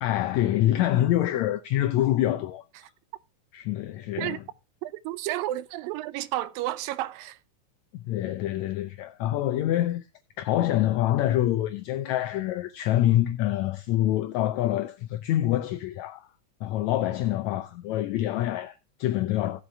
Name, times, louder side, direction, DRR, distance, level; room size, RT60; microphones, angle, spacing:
voice 1, 0.0-2.6 3.5-4.4 7.9-10.1 10.4-16.3 16.6-19.6, left 13 dB, 75° left, 1.7 m, -26 dB
voice 2, 4.8-7.4, right 15 dB, 85° right, 2.4 m, -31 dB
15.5 x 7.7 x 3.4 m
omnidirectional pair, 3.9 m